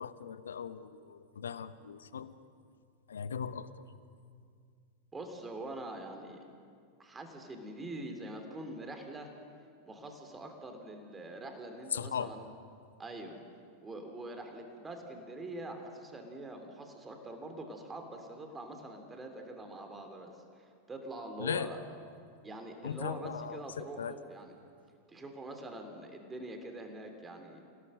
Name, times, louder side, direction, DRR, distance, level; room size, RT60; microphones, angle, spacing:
voice 1, 0.0-2.4 3.1-3.8 11.9-12.3 21.4-21.7 22.8-24.2, left 7 dB, 70° left, 14 dB, 1.0 m, -38 dB
voice 2, 5.1-6.4 7.0-9.3 9.9-12.4 13.0-13.4 13.8-21.8 22.4-24.5 25.1-27.6, right 2 dB, 15° right, 4 dB, 2.9 m, -44 dB
28.5 x 17.5 x 6.4 m, 2.2 s
figure-of-eight pair, 90°, 0 cm